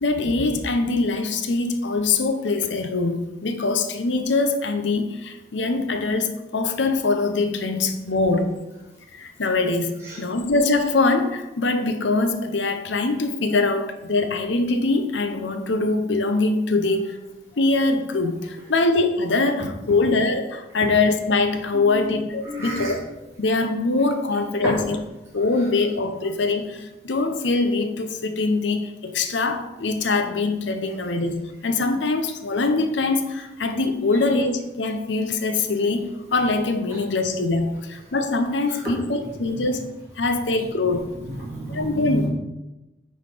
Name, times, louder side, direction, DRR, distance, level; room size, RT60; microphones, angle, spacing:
voice 1, 0.0-8.5 9.1-17.2 17.6-23.0 23.4-25.0 25.3-31.4 31.6-36.1 36.3-39.8 40.2-41.1 41.7-42.3, left 3 dB, 85° left, 7 dB, 0.8 m, -23 dB
voice 2, 22.4-22.9 24.6-24.7 38.7-38.8 41.2-42.3, equal, 15° right, -10 dB, 2.7 m, -30 dB
8.8 x 3.9 x 5.0 m, 1.0 s
head